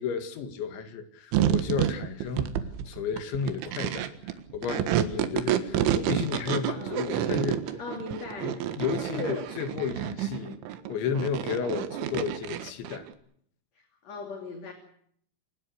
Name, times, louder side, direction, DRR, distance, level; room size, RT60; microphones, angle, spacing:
voice 1, 0.0-2.6 2.9-7.8 8.4-10.6 10.9-13.1, left 6 dB, 75° left, 9 dB, 4.3 m, -33 dB
sound 1, 1.3-13.1, right 11 dB, 80° right, 3.9 m, -29 dB
voice 2, 6.7-7.0 7.8-8.6 9.1-9.5 13.8-14.7, left 3 dB, 40° left, 5 dB, 3.3 m, -38 dB
29.5 x 20.0 x 6.4 m, 0.66 s
omnidirectional pair, 5.5 m